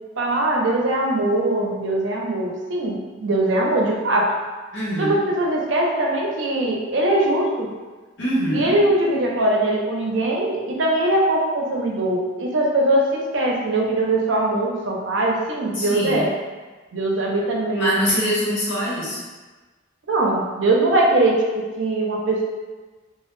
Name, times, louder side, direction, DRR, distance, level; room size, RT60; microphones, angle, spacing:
voice 1, 0.2-4.3 5.0-7.7 8.5-16.3 16.9-18.0 20.1-22.4, right 1 dB, 70° right, -1 dB, 0.5 m, -21 dB
voice 2, 4.7-5.2 8.2-8.8 15.7-16.3 17.7-19.2, equal, 70° left, -7 dB, 0.9 m, -23 dB
2.3 x 2.1 x 3.0 m, 1.3 s
head